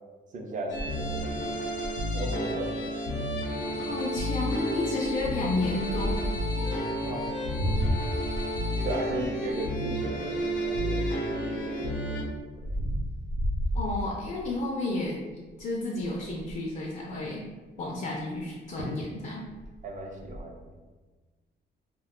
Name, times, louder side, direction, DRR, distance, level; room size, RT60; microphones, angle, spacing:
voice 1, 0.3-1.5 2.1-2.9 3.4-3.9 7.0-7.8 8.8-11.0 11.3-12.1 19.8-20.6, right 2 dB, 40° right, 0 dB, 0.5 m, -37 dB
sound 1, 0.7-12.2, equal, 90° left, 0.7 m, -31 dB
sound 2, 0.7-2.2 2.8-2.9 3.1-3.3 3.9-4.2 5.0-6.5 7.2-11.1 11.5-14.6 15.0-15.3 15.6-15.7 15.9-16.7 18.4-18.5 18.8-19.1 19.4-20.4, equal, 75° right, 0.8 m, -33 dB
voice 2, 3.9-6.3 13.7-15.2 15.6-17.4 17.8-19.5, left 2 dB, 45° left, -3 dB, 0.4 m, -31 dB
2.4 x 2.3 x 3.6 m, 1.3 s
cardioid pair, 155°, 19 cm